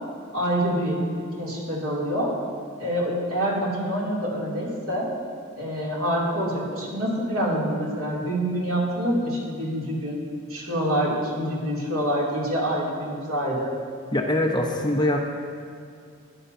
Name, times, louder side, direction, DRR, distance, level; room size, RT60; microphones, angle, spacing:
voice 1, 0.3-1.0 1.4-2.3 2.8-5.1 5.6-10.2 10.5-13.7, equal, 85° right, -5 dB, 2.8 m, -26 dB
voice 2, 14.1-15.2, left 1 dB, 20° left, 1 dB, 0.8 m, -23 dB
15.5 x 10.5 x 2.7 m, 2.3 s
head